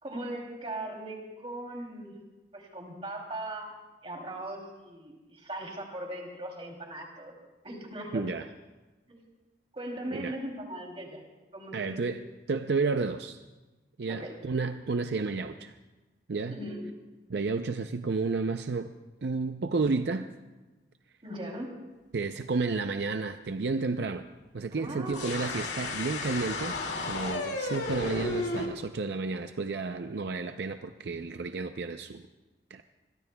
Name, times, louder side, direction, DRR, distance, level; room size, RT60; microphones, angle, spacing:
voice 1, 0.0-2.2 2.5-3.7 4.0-7.4 7.6-8.3 9.1-9.2 9.7-11.2 11.5-12.1 14.1-14.4 16.5-16.9 21.2-21.7 24.7-25.3, right 1 dB, 30° right, 0 dB, 2.9 m, -39 dB
voice 2, 8.1-8.5 10.1-10.4 11.7-12.2 12.5-13.4 14.0-15.8 16.3-16.6 17.3-18.9 19.2-20.3 22.1-24.2 24.5-26.7 27.1-32.2 32.7-32.8, right 4 dB, 75° right, 8 dB, 0.5 m, -31 dB
sound 1, 25.1-28.7, left 3 dB, 80° left, 2.3 m, -33 dB
26.5 x 22.0 x 2.3 m, 1.2 s
head